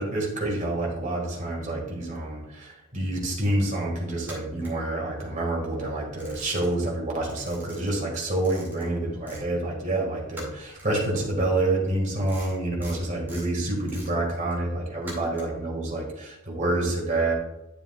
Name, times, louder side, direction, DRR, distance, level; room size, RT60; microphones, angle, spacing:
voice 1, 0.0-17.3, right 2 dB, 35° right, -2 dB, 2.0 m, -28 dB
sound 1, 4.2-5.5 5.8-7.0 7.2-9.5 9.8-15.7, right 1 dB, 10° right, 2.4 m, -46 dB
10.0 x 6.9 x 2.4 m, 0.93 s
head